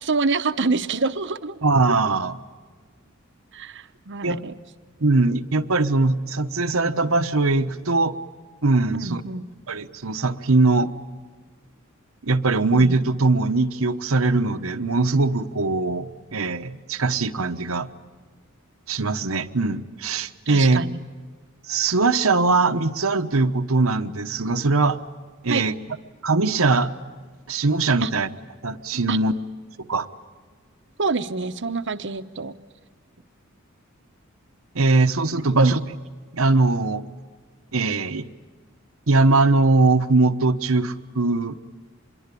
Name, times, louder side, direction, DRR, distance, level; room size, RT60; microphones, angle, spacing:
voice 1, 0.0-1.6 3.5-4.5 8.9-9.5 20.5-21.0 25.5-25.7 28.0-28.1 29.1-29.2 31.0-32.5 35.4-35.7, right 4 dB, 60° right, 10 dB, 1.0 m, -26 dB
voice 2, 1.6-2.4 4.2-4.4 5.0-8.2 8.6-9.2 9.7-10.9 12.2-17.9 18.9-20.8 21.7-25.0 25.4-25.7 26.2-26.9 27.5-28.3 28.6-29.3 29.9-30.1 34.7-35.8 36.3-37.0 37.7-38.2 39.1-41.6, right 3 dB, 80° right, 9 dB, 1.1 m, -21 dB
26.5 x 22.0 x 8.5 m, 1.5 s
head